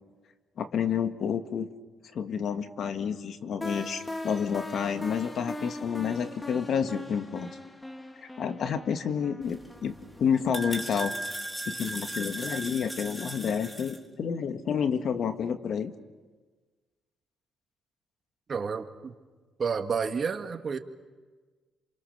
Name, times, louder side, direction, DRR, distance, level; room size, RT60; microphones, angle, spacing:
voice 1, 0.6-1.7 2.1-7.5 8.4-11.1 11.7-15.9, left 7 dB, 60° left, 8 dB, 1.8 m, -29 dB
sound 1, 3.6-10.4, left 2 dB, 15° left, 1.9 m, -40 dB
sound 2, 9.4-14.0, right 1 dB, ahead, 2.8 m, -37 dB
voice 2, 18.5-19.1 19.6-20.8, right 5 dB, 45° right, 6 dB, 2.1 m, -30 dB
28.0 x 27.5 x 6.8 m, 1.4 s
cardioid pair, 90°, 0 cm